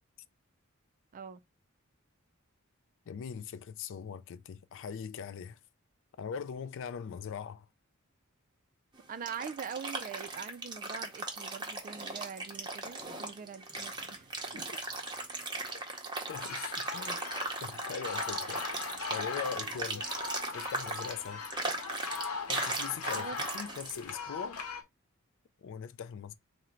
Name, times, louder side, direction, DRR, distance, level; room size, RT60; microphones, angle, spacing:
voice 1, 3.1-5.6 6.2-7.7 16.3-17.2 17.6-18.6 19.1-20.1 20.5-21.4 22.5-24.6 25.6-26.3, left 7 dB, 60° left, 0.4 m, -41 dB
sound 1, 9.0-24.0, right 3 dB, 20° right, 0.7 m, -38 dB
voice 2, 9.1-14.3 14.5-14.6 23.2-23.4, right 6 dB, 40° right, 0.3 m, -43 dB
sound 2, 16.3-24.8, left 5 dB, 90° left, 0.8 m, -40 dB
3.7 x 2.1 x 4.3 m
head